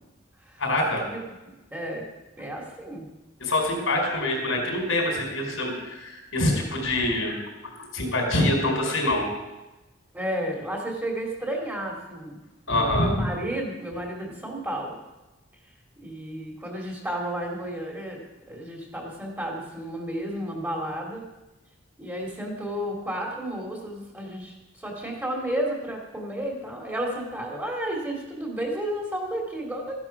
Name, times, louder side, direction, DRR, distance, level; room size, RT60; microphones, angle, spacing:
voice 1, 0.6-1.0 3.4-7.3 7.6-9.3 12.7-13.3, left 1 dB, 90° left, 1 dB, 4.7 m, -25 dB
voice 2, 1.7-2.1 2.4-3.1 10.1-12.4 12.7-14.9 16.0-18.2 18.5-21.2 22.0-30.0, right 1 dB, 10° right, -1 dB, 3.0 m, -32 dB
15.0 x 10.5 x 6.1 m, 1.0 s
head